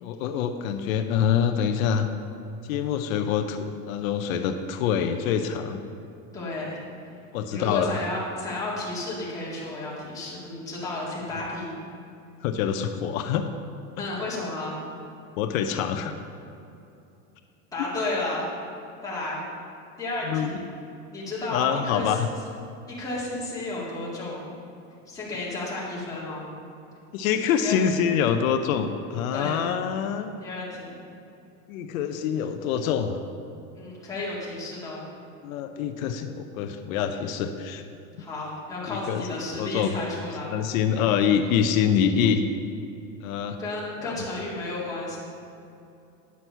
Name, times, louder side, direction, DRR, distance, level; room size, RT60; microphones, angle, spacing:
voice 1, 0.0-2.1 2.7-5.8 7.3-8.0 12.4-13.5 15.4-16.2 20.3-20.5 21.5-22.3 27.1-30.3 31.7-33.2 35.4-37.8 38.9-39.2 39.6-39.9 40.5-42.4 43.2-43.6 44.0-44.2, left 8 dB, 85° left, 7 dB, 0.8 m, -25 dB
voice 2, 6.3-6.8 7.5-11.7 14.0-14.8 17.7-18.5 19.0-19.4 20.0-20.7 21.1-22.2 22.9-24.4 25.1-26.5 27.6-27.8 29.3-29.6 30.4-31.0 33.7-35.0 38.2-40.6 40.8-41.1 43.6-45.2, left 2 dB, 10° left, -8 dB, 2.0 m, -32 dB
9.7 x 6.2 x 5.7 m, 2.7 s
supercardioid pair, 170°, 40 cm